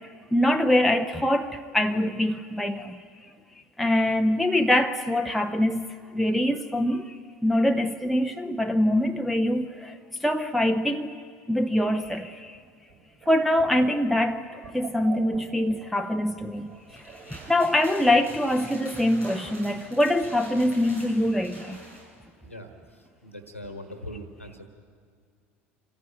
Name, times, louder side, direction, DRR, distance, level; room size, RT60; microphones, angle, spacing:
voice 1, 0.3-3.0 3.8-5.9 6.1-7.2 7.4-11.1 11.5-12.6 13.3-21.8, left 1 dB, ahead, 4 dB, 0.8 m, -24 dB
sound 1, 11.5-18.9 19.2-19.3 19.5-19.6 19.9-21.0, right 6 dB, 45° right, 4.2 m, -47 dB
sound 2, 16.7-22.1, right 1 dB, 90° right, 6.4 m, -46 dB
voice 2, 22.4-24.7, equal, 90° left, 7 dB, 1.5 m, -41 dB
26.5 x 15.0 x 9.1 m, 2.1 s
figure-of-eight pair, 70°, 7 cm